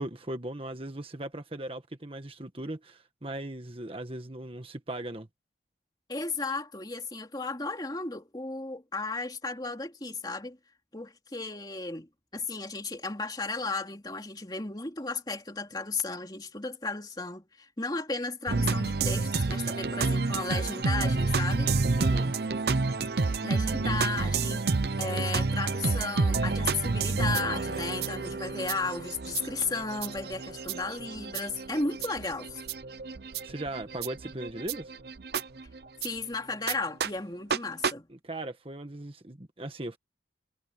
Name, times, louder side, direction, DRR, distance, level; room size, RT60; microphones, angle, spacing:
voice 1, 0.0-5.3 22.0-22.3 33.4-34.9 38.1-40.0, right 1 dB, 30° right, 1.6 m, -38 dB
voice 2, 6.1-10.6 10.9-21.7 23.4-24.7 25.0-32.6 36.0-38.1, left 3 dB, 20° left, 3.0 m, -34 dB
sound 1, 18.5-36.1 36.7-36.8 37.0-37.1 37.5-37.6 37.8-37.9, right 4 dB, 60° right, 0.7 m, -29 dB
head